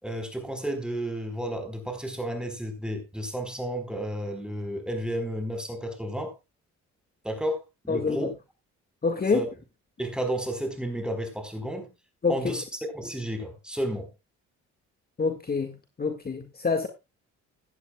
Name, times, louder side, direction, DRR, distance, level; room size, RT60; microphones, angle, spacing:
voice 1, 0.0-6.3 7.2-8.3 9.3-9.5 10.0-11.9 12.3-12.6 12.9-14.1, right 1 dB, 5° right, 4.5 m, -32 dB
voice 2, 7.9-8.3 9.0-9.4 12.2-12.5 15.2-16.9, left 4 dB, 30° left, 1.9 m, -27 dB
16.0 x 11.0 x 2.3 m
cardioid pair, 90°, 30 cm